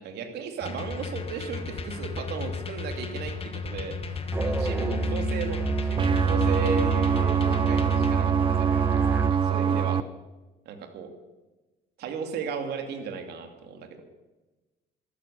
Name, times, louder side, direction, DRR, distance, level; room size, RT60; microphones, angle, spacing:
voice 1, 0.0-10.0 10.6-11.1 12.0-14.0, right 5 dB, 75° right, 5 dB, 2.6 m, -35 dB
sound 1, 0.6-8.1, left 5 dB, 35° left, 1.6 m, -35 dB
Musical instrument, 4.3-9.5, right 3 dB, 15° right, 1.1 m, -28 dB
sound 2, 6.0-10.0, right 8 dB, 30° right, 0.6 m, -24 dB
14.5 x 13.0 x 6.9 m, 1.2 s
cardioid pair, 110°, 17 cm